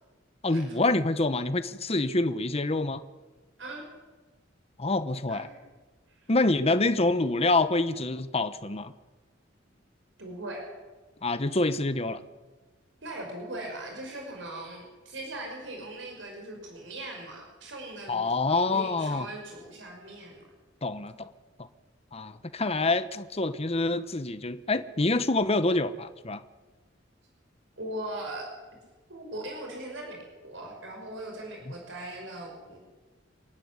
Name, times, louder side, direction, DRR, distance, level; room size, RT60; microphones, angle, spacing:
voice 1, 0.4-3.0 4.8-5.5 6.3-8.9 11.2-12.2 18.1-19.3 20.8-21.1 21.6-21.7 22.1-26.4 31.7-31.8, left 2 dB, 35° left, 11 dB, 1.1 m, -26 dB
voice 2, 5.3-5.6 6.1-6.2 6.7-6.9 10.2-10.7 13.0-20.4 27.8-28.5 29.1-32.8, right 1 dB, 85° right, 1 dB, 5.6 m, -40 dB
27.0 x 12.5 x 9.8 m, 1.2 s
head